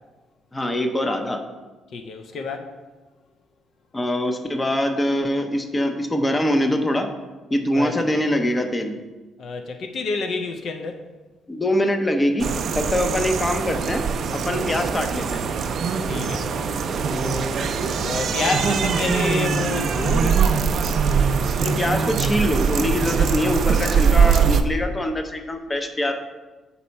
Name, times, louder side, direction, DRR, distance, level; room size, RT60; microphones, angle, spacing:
voice 1, 0.5-1.4 3.9-7.1 7.5-9.0 11.5-12.5 12.8-14.0 14.3-15.4 21.6-26.1, left 1 dB, 20° left, 6 dB, 0.6 m, -23 dB
voice 2, 1.9-2.7 7.7-8.0 9.4-11.1 16.1-16.6 17.1-17.7 18.0-20.5, left 4 dB, 65° left, 6 dB, 0.5 m, -29 dB
sound 1, 12.4-24.6, right 6 dB, 65° right, 0.4 m, -22 dB
4.2 x 4.1 x 5.6 m, 1.2 s
cardioid pair, 90°, 0 cm